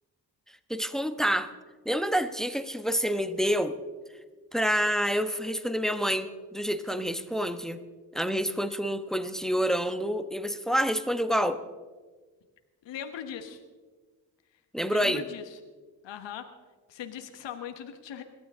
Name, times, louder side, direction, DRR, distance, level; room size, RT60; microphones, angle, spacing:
voice 1, 0.7-1.5 1.8-3.8 4.5-7.8 8.1-11.6 14.7-15.3, equal, ahead, 10 dB, 1.2 m, -28 dB
voice 2, 12.8-13.6 14.9-15.6 16.0-16.5 16.9-18.2, left 9 dB, 70° left, 7 dB, 1.4 m, -39 dB
21.5 x 14.5 x 3.7 m, 1.4 s
hypercardioid pair, 40°, 45 cm